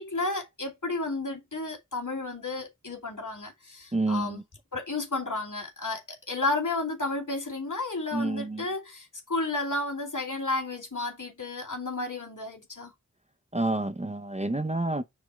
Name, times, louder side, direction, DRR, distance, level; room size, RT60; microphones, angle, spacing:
voice 1, 0.0-4.4 4.7-12.9, left 2 dB, 70° left, 2.6 m, -32 dB
voice 2, 3.9-4.4 8.1-8.6 13.5-15.0, right 2 dB, 20° right, 0.6 m, -28 dB
6.3 x 3.4 x 4.9 m
wide cardioid pair, 40°, 32 cm